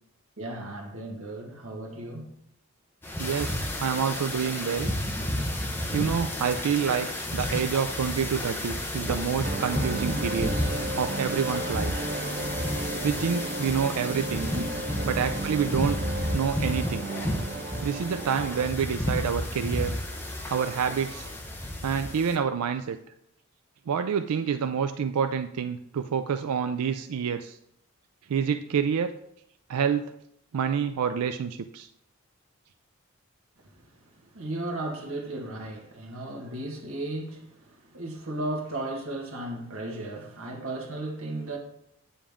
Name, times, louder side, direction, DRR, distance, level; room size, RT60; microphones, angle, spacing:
voice 1, 0.4-2.3 14.5-14.7 33.6-41.6, right 1 dB, 65° right, 1.6 m, -35 dB
sound 1, 3.0-22.4, left 1 dB, 10° left, 0.9 m, -32 dB
voice 2, 3.2-4.9 5.9-10.5 11.0-11.9 13.0-14.5 15.1-16.0 16.3-17.1 17.8-19.9 20.5-21.3 21.8-23.0 23.9-27.6 28.3-29.1 29.7-30.0 30.5-31.9, right 7 dB, 90° right, 0.4 m, -28 dB
sound 2, 9.4-18.7, right 2 dB, 35° right, 0.5 m, -34 dB
8.7 x 7.1 x 3.6 m
head